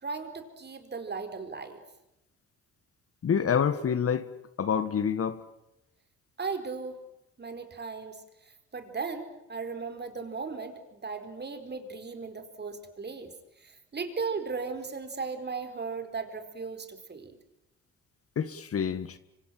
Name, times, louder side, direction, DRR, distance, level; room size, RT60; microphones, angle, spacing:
voice 1, 0.0-1.8 6.4-7.0 7.4-8.2 8.7-13.3 13.6-17.4, right 4 dB, 35° right, 4.6 m, -36 dB
voice 2, 3.2-4.3 4.6-5.4 18.3-19.2, left 7 dB, 50° left, 1.7 m, -27 dB
26.5 x 25.0 x 7.7 m
cardioid pair, 90°, 30 cm